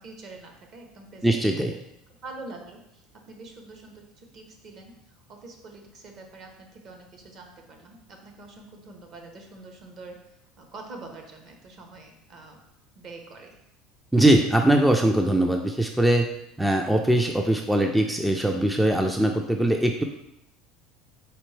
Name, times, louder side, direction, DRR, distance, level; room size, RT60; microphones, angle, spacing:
voice 1, 0.0-1.4 2.2-5.0 5.3-10.2 10.6-12.6 13.0-13.6, right 3 dB, 50° right, 3 dB, 0.9 m, -45 dB
voice 2, 1.2-1.8 14.1-16.3 16.6-20.0, right 1 dB, 5° right, 3 dB, 0.3 m, -21 dB
4.2 x 3.8 x 3.3 m, 0.84 s
supercardioid pair, 110°, 0 cm